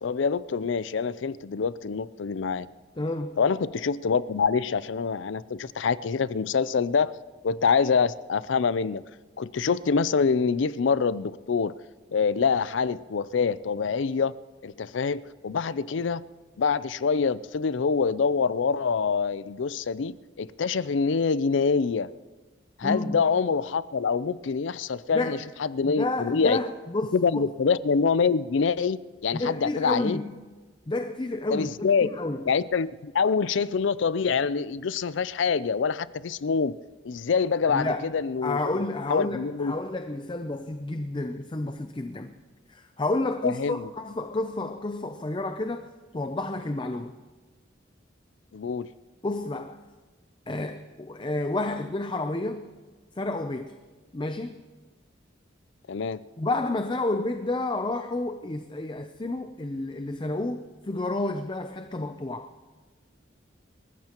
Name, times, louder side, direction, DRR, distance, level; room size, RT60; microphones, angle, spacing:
voice 1, 0.0-2.7 3.4-7.1 7.4-9.0 9.4-11.7 12.1-14.3 14.6-16.2 16.6-22.1 22.8-26.6 27.1-30.2 31.5-32.1 32.5-36.7 37.0-38.6 39.1-39.7 43.4-43.9 48.5-48.9 55.9-56.2, left 5 dB, 75° left, 0.5 m, -25 dB
voice 2, 3.0-3.4 22.8-23.2 25.1-25.5 25.8-27.4 29.3-30.3 30.9-32.5 37.7-38.1 38.4-42.3 42.7-47.1 49.2-49.8 50.5-52.7 53.2-53.8 54.1-54.6 56.4-62.5, left 2 dB, 25° left, 0.5 m, -30 dB
27.5 x 14.5 x 3.0 m
head